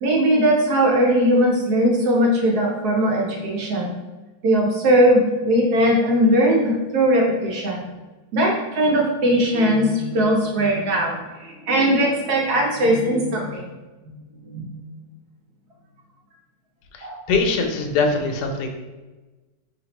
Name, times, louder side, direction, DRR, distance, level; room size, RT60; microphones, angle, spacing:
voice 1, 0.0-3.9 4.4-7.8 8.3-13.7 14.5-14.7 17.0-17.2, equal, 70° right, -1 dB, 1.0 m, -19 dB
voice 2, 16.9-18.7, left 4 dB, 70° left, 4 dB, 1.1 m, -22 dB
5.1 x 2.8 x 2.9 m, 1.2 s
omnidirectional pair, 2.1 m